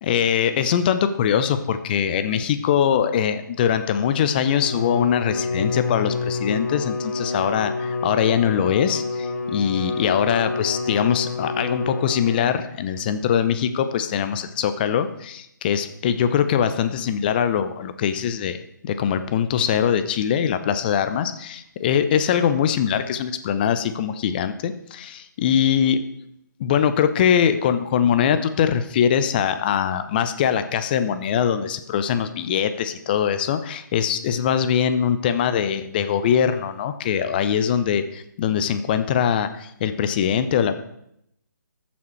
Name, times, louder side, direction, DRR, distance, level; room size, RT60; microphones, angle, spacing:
voice 1, 0.0-18.6 18.8-26.0 26.6-40.8, left 8 dB, 30° left, 10 dB, 0.6 m, -22 dB
Bowed string instrument, 4.5-12.8, left 4 dB, 55° left, 1.2 m, -28 dB
13.0 x 7.2 x 3.1 m, 0.76 s
figure-of-eight pair, 150°, 11 cm